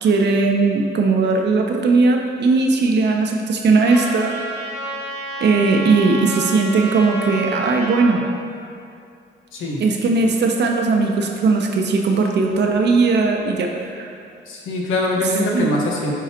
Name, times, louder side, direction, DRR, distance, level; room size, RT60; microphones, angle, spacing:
voice 1, 0.0-4.3 5.4-8.2 9.8-14.1 15.5-15.7, right 3 dB, 60° right, 2 dB, 0.8 m, -18 dB
Trumpet, 3.8-8.1, right 1 dB, 60° left, 1.2 m, -30 dB
voice 2, 9.5-9.8 14.5-16.1, left 1 dB, 85° left, -2 dB, 1.3 m, -22 dB
10.0 x 3.9 x 2.9 m, 2.5 s
cardioid pair, 90°, 20 cm